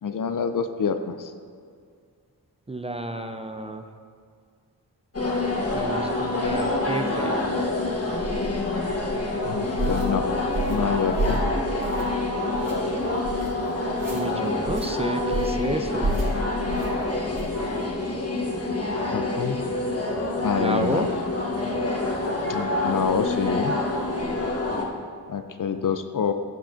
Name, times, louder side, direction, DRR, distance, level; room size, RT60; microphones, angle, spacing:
voice 1, 0.0-1.3 9.4-10.3 10.7-11.4 19.1-19.6 20.4-21.1 22.5-23.8 25.3-26.3, left 6 dB, 50° left, 9 dB, 0.5 m, -27 dB
voice 2, 2.7-3.9 5.7-7.4 14.1-16.2 20.6-21.1, right 1 dB, 15° right, 6 dB, 0.5 m, -30 dB
sound 1, 5.1-24.9, left 2 dB, 35° left, 1.3 m, -27 dB
sound 2, 9.8-10.1 10.5-10.8 11.1-11.5 11.8-12.2 12.5-12.7 13.2-13.5 13.9-14.2 14.6-14.9 15.3-15.6 16.0-16.3 16.7-16.9 17.3-17.6, right 2 dB, 55° right, 1.9 m, -29 dB
15.0 x 5.8 x 2.6 m, 2.1 s
cardioid pair, 60°, 40 cm